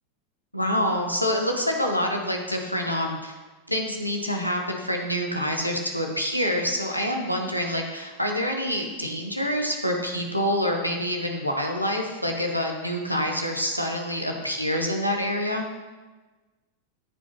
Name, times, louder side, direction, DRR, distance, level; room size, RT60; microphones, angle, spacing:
voice 1, 0.5-3.3 3.7-15.7, equal, 90° left, 2 dB, 1.1 m, -26 dB
13.5 x 5.3 x 3.1 m, 1.3 s
figure-of-eight pair, 90°, 0 cm